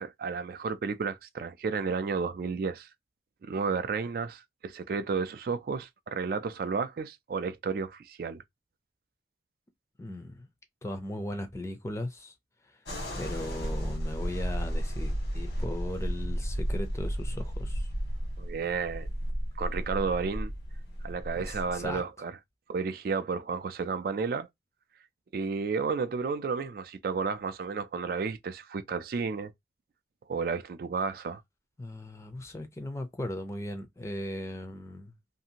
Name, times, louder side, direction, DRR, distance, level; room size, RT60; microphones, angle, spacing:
voice 1, 0.0-2.9 3.4-8.4 18.4-19.1 19.6-20.5 21.0-22.4 22.7-24.5 25.3-29.5 30.3-31.4, right 5 dB, 55° right, 0.3 m, -32 dB
voice 2, 10.0-10.5 10.8-12.3 13.2-17.9 21.4-22.0 31.8-35.1, left 1 dB, 15° left, 0.5 m, -38 dB
sound 1, 12.9-22.0, equal, 80° left, 1.3 m, -33 dB
2.6 x 2.5 x 2.7 m
head